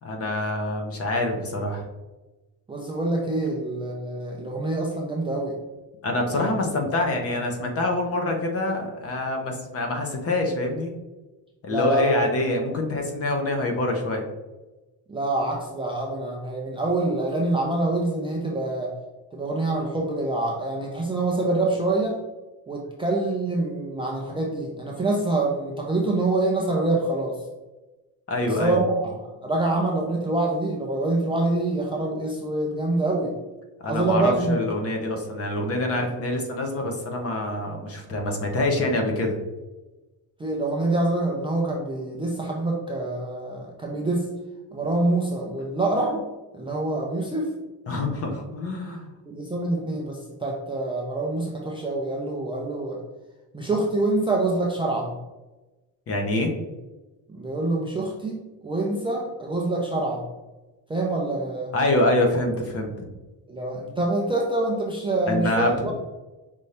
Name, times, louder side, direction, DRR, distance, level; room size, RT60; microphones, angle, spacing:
voice 1, 0.0-1.9 6.0-10.9 11.6-14.3 28.3-28.8 33.8-39.4 47.9-49.1 56.1-56.5 61.7-63.1 65.3-65.9, left 2 dB, 35° left, 2 dB, 0.8 m, -25 dB
voice 2, 2.7-5.6 6.3-6.5 11.7-12.2 15.1-18.9 19.3-22.2 22.7-27.4 28.6-33.3 33.9-34.6 40.4-44.3 44.7-46.2 46.5-47.5 49.3-53.0 53.5-55.2 57.3-60.2 60.9-61.7 63.5-65.9, right 2 dB, 15° right, -2 dB, 0.4 m, -26 dB
5.3 x 2.7 x 3.2 m, 1.1 s
cardioid pair, 145°, 41 cm